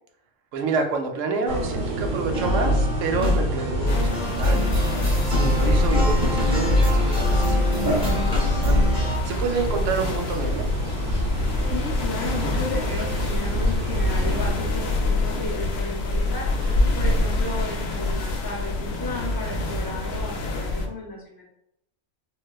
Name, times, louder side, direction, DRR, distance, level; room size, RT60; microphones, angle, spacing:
voice 1, 0.5-4.7 5.2-10.7 16.6-17.0, right 4 dB, 85° right, 4 dB, 0.9 m, -29 dB
sound 1, 1.4-14.5, right 2 dB, 55° right, 0.8 m, -29 dB
sound 2, 2.3-9.2, left 1 dB, 5° right, 0.5 m, -23 dB
sound 3, 3.9-20.9, left 2 dB, 65° left, 0.7 m, -26 dB
voice 2, 11.6-16.5 16.9-21.5, left 2 dB, 20° left, -3 dB, 0.8 m, -34 dB
4.0 x 2.1 x 2.3 m, 0.80 s
omnidirectional pair, 1.3 m